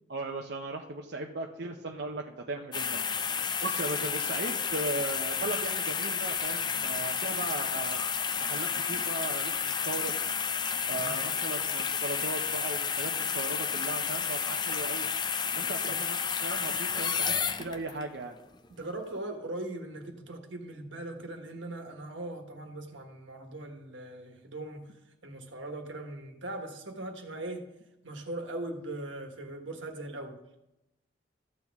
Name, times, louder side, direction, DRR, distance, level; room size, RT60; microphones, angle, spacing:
voice 1, 0.1-3.0 3.6-8.0 8.4-10.1 10.9-15.1 15.6-18.3, right 2 dB, 60° right, 1 dB, 0.7 m, -37 dB
sound 1, 2.7-18.0 18.5-18.7, left 6 dB, 25° left, 0.4 m, -31 dB
voice 2, 10.9-11.3 15.8-16.0 18.7-24.9 25.2-27.7 28.0-30.4, right 2 dB, 90° right, 4 dB, 1.4 m, -40 dB
13.5 x 8.4 x 3.5 m, 0.92 s
head